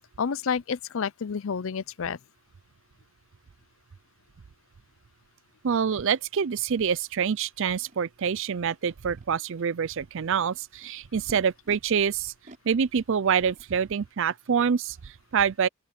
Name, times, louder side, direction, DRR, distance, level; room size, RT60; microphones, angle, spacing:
voice 1, 0.2-2.2, left 6 dB, 65° left, 0.5 m, -29 dB
voice 2, 5.6-12.3 12.6-15.7, right 7 dB, 60° right, 0.5 m, -26 dB
Animal, 7.9-8.0 8.7-9.3 10.1-11.8 12.4-13.7, right 2 dB, 40° right, 5.2 m, -53 dB
open air
head